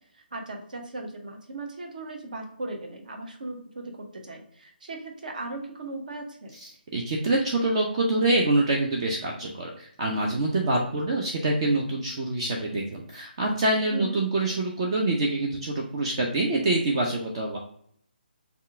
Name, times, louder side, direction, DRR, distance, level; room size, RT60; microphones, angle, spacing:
voice 1, 0.1-6.5 13.9-14.2, right 2 dB, 50° right, 3 dB, 1.1 m, -38 dB
voice 2, 6.6-17.6, right 2 dB, 30° right, -1 dB, 0.6 m, -26 dB
5.5 x 2.4 x 3.5 m, 0.66 s
figure-of-eight pair, 140°, 6 cm